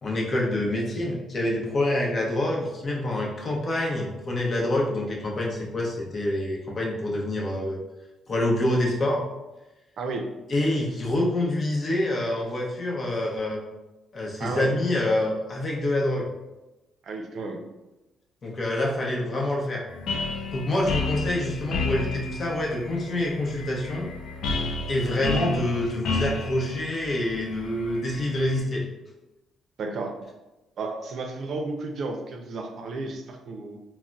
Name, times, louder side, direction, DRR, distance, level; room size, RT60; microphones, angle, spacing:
voice 1, 0.0-7.8 8.3-9.2 10.5-13.6 14.1-16.3 18.4-19.9 20.5-24.1 24.9-28.8, left 1 dB, 45° left, -2 dB, 0.7 m, -26 dB
voice 2, 10.0-10.3 14.4-14.7 17.0-17.6 29.8-30.2 30.8-33.8, right 3 dB, 65° right, 3 dB, 0.4 m, -32 dB
sound 1, 19.9-28.6, left 3 dB, 75° left, 0.4 m, -32 dB
3.7 x 2.0 x 2.2 m, 1.0 s
cardioid pair, 90°, 0 cm